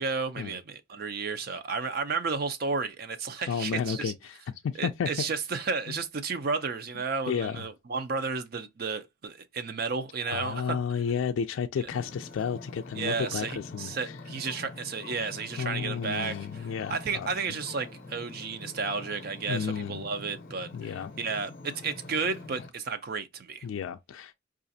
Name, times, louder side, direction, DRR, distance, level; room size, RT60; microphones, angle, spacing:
voice 1, 0.0-4.1 4.8-10.8 11.8-11.9 12.9-23.7, right 4 dB, 50° right, 0.5 m, -32 dB
voice 2, 3.5-5.1 5.9-6.0 7.3-7.7 10.3-13.9 15.6-17.3 19.5-20.0 20.7-21.1 23.6-24.3, left 7 dB, 85° left, 0.3 m, -32 dB
Ocean, 11.9-22.7, left 3 dB, 45° left, 0.6 m, -45 dB
4.8 x 2.4 x 2.6 m
head